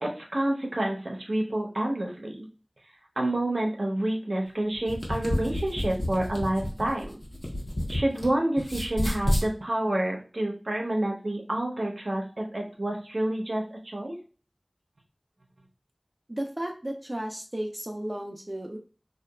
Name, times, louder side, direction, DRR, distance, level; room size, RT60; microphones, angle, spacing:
voice 1, 0.0-2.5 3.2-7.2 7.9-14.1, right 1 dB, 90° right, 0 dB, 0.6 m, -28 dB
sound 1, 4.7-8.3 8.6-9.5, left 1 dB, 60° left, 0.8 m, -29 dB
voice 2, 16.3-18.8, right 1 dB, 30° right, 2 dB, 0.4 m, -34 dB
2.7 x 2.2 x 2.3 m, 0.37 s
wide cardioid pair, 45°, 0 cm